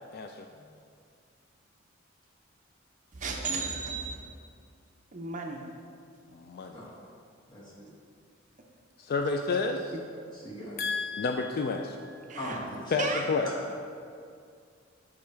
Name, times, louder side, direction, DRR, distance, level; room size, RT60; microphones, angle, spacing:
voice 1, 0.1-0.5 6.3-6.8 9.0-9.9 10.8-12.1 12.9-13.5, left 4 dB, 50° left, 5 dB, 0.3 m, -30 dB
voice 2, 3.1-4.1 5.1-5.7 10.4-10.5 12.3-12.6 13.0-13.2, right 4 dB, 40° right, 1 dB, 0.6 m, -34 dB
voice 3, 7.5-7.9 10.3-10.8 12.4-13.2, equal, 20° left, -7 dB, 1.6 m, -41 dB
5.8 x 5.3 x 4.5 m, 2.3 s
head